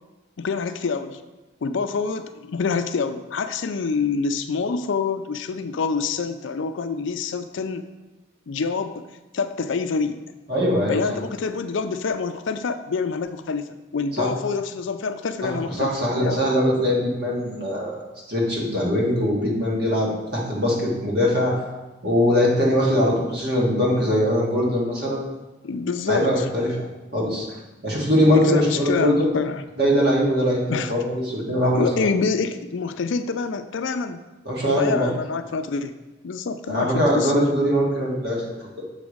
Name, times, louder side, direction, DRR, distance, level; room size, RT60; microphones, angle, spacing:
voice 1, 0.4-1.2 1.6-7.8 8.5-9.0 9.3-10.2 10.9-16.4 25.6-26.5 28.3-29.6 30.7-30.9 31.7-34.2 34.8-36.0 36.2-37.5, left 4 dB, 65° left, 9 dB, 0.4 m, -26 dB
voice 2, 10.5-11.0 14.2-14.3 15.4-18.0 18.3-21.6 22.0-25.2 26.1-26.8 27.1-27.5 27.8-29.3 29.8-32.1 34.4-35.1 36.7-38.8, equal, 50° right, -3 dB, 1.7 m, -21 dB
6.9 x 4.1 x 5.0 m, 1.1 s
head